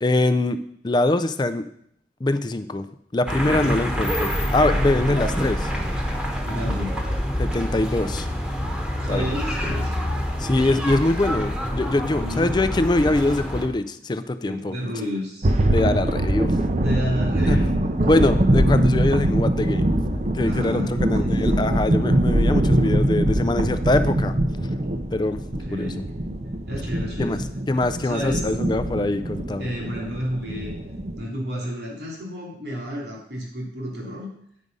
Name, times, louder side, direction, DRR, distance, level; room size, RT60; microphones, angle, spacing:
voice 1, 0.0-0.6 0.8-1.7 2.2-2.9 3.1-5.7 7.4-8.3 9.1-9.3 10.4-14.7 15.7-16.5 17.5-17.6 18.1-20.0 20.3-24.3 25.1-25.4 25.7-25.9 27.2-27.4 27.7-29.7, left 2 dB, 25° left, 11 dB, 0.4 m, -23 dB
sound 1, 3.3-13.7, equal, 5° right, 1.1 m, -26 dB
voice 2, 5.0-5.3 6.4-7.0 9.0-10.0 12.2-12.6 14.4-15.5 16.8-18.4 20.4-21.7 25.4-26.0 26.7-27.4 28.0-28.5 29.6-30.7 31.2-34.3, equal, 75° right, -2 dB, 2.9 m, -31 dB
sound 2, 15.4-31.2, right 1 dB, 40° right, 0.6 m, -23 dB
9.4 x 4.9 x 5.4 m, 0.70 s
head